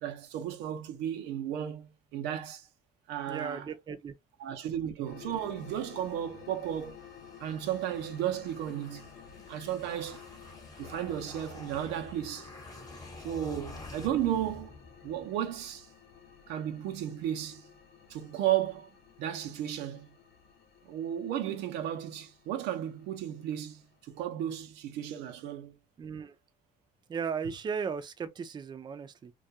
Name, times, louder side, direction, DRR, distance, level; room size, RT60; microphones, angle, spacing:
voice 1, 0.0-2.7 3.1-3.7 4.4-7.0 7.4-9.1 9.5-10.2 10.8-12.5 13.2-14.8 15.0-15.9 16.5-17.7 18.1-18.9 19.2-20.1 20.8-25.8, right 11 dB, 90° right, 0.6 m, -34 dB
voice 2, 3.3-4.1 26.0-26.4 27.1-29.3, right 6 dB, 25° right, 0.4 m, -36 dB
sound 1, 5.0-24.2, left 8 dB, 70° left, 0.7 m, -53 dB
sound 2, 6.0-15.4, left 2 dB, 20° left, 0.9 m, -49 dB
2.3 x 2.2 x 2.7 m
cardioid pair, 110°, 17 cm